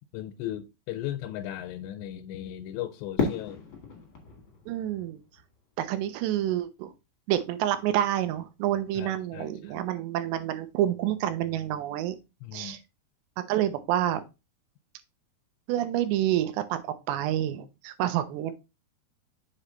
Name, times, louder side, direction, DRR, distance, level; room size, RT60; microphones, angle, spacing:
voice 1, 0.1-3.6 9.0-9.8 12.4-12.8, left 12 dB, 90° left, 2.8 m, -37 dB
Fireworks, 3.2-6.2, left 5 dB, 50° left, 1.5 m, -34 dB
voice 2, 4.7-5.2 5.8-6.9 7.3-12.2 12.5-12.8 13.4-14.2 15.7-18.5, right 12 dB, 80° right, 2.9 m, -28 dB
7.2 x 4.3 x 3.9 m
omnidirectional pair, 5.1 m